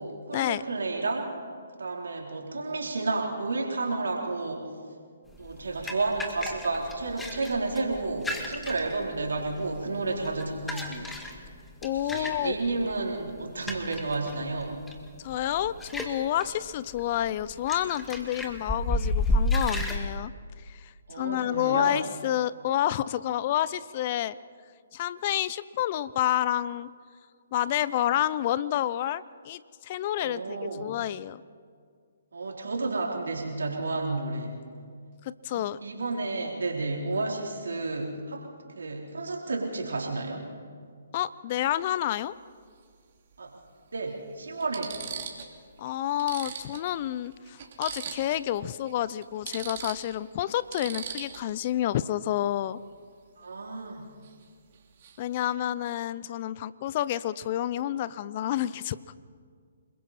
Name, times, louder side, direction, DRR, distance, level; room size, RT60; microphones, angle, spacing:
voice 1, 0.0-1.3 1.8-4.7 5.4-11.2 12.0-14.8 21.1-22.0 30.2-30.8 32.3-34.6 35.5-38.5 38.7-40.5 43.4-43.5 43.9-45.0 53.4-54.1, right 3 dB, 75° right, 0 dB, 4.0 m, -31 dB
sound 1, 5.3-20.0, left 1 dB, 5° left, 1.8 m, -33 dB
voice 2, 11.8-12.6 15.2-20.3 20.7-24.4 24.9-26.9 27.5-31.4 35.2-35.8 41.1-42.3 45.8-52.8 55.2-59.2, left 12 dB, 40° left, 18 dB, 0.6 m, -29 dB
sound 2, 41.7-41.9 43.3-43.4 44.1-44.2 44.6-45.5 45.9-46.0 46.2-48.5 48.8-48.9 49.2-51.6 54.2-54.4 54.7-55.2, right 7 dB, 50° right, 2.8 m, -40 dB
29.0 x 21.5 x 4.3 m, 2.1 s
figure-of-eight pair, 140°, 0 cm